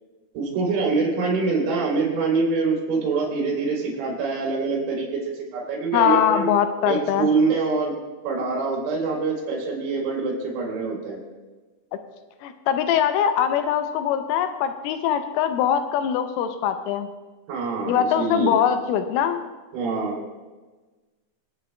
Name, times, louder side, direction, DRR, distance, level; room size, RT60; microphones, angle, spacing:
voice 1, 0.4-6.5 6.9-8.0 8.3-11.2 17.5-18.6 19.7-20.2, right 4 dB, 90° right, -3 dB, 5.7 m, -25 dB
voice 2, 5.9-7.3 12.4-17.1 17.9-19.4, left 9 dB, 80° left, 8 dB, 3.1 m, -22 dB
26.0 x 9.0 x 2.2 m, 1.3 s
omnidirectional pair, 6.0 m